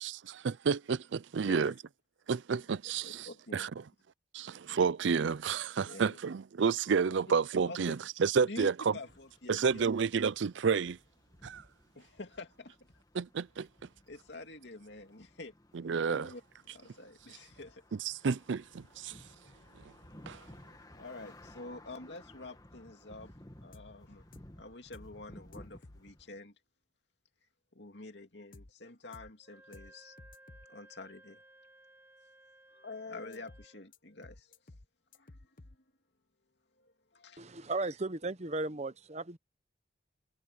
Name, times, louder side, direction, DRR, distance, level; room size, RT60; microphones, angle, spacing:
voice 1, 0.0-1.7 2.3-3.7 4.3-8.7 9.5-11.0 11.4-11.6 13.2-13.7 15.8-16.3 18.0-19.2 20.3-20.4, right 5 dB, 75° right, 0.5 m, -30 dB
voice 2, 1.3-1.8 2.7-3.7 4.4-4.5 5.8-6.2 7.7-8.0 8.4-9.9 11.9-12.8 14.1-15.5 16.1-17.8 19.1-19.2 20.9-23.3 23.6-24.3 24.6-26.5 27.7-30.2 30.5-31.4 32.7-34.6 35.1-35.8 36.8-37.4, left 2 dB, 65° left, 2.6 m, -48 dB
sound 1, 9.1-26.4, left 1 dB, 20° left, 1.7 m, -57 dB
sound 2, 23.7-23.9 24.3-24.5 24.9-25.1 25.5-26.0 28.5-28.7 29.1-29.3 29.7-29.9 30.2-30.7 33.3-33.7 33.9-34.0 34.2-34.9 35.1-35.8, left 2 dB, 45° left, 1.1 m, -53 dB
Wind instrument woodwind instrument, 29.4-33.9, right 1 dB, 15° right, 3.3 m, -59 dB
voice 3, 37.4-39.4, right 2 dB, 35° right, 0.9 m, -36 dB
head